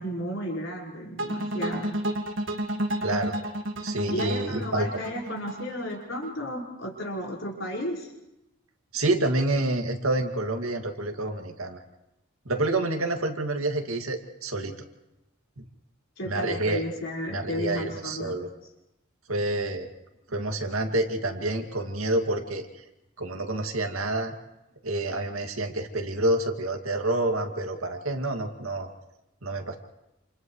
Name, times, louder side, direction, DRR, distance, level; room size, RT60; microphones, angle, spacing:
voice 1, 0.0-2.0 4.1-8.1 16.2-18.3, equal, 65° left, -1 dB, 5.2 m, -33 dB
sound 1, 1.2-6.3, right 1 dB, 60° right, 1.8 m, -31 dB
voice 2, 3.0-3.4 3.8-4.9 8.9-11.8 12.5-14.7 15.6-15.7 16.2-16.8 17.3-18.5 19.3-19.9 20.3-22.7 23.2-24.3 24.8-28.9 29.4-29.8, right 2 dB, 90° right, 4 dB, 2.3 m, -28 dB
28.5 x 28.5 x 3.2 m, 0.93 s
head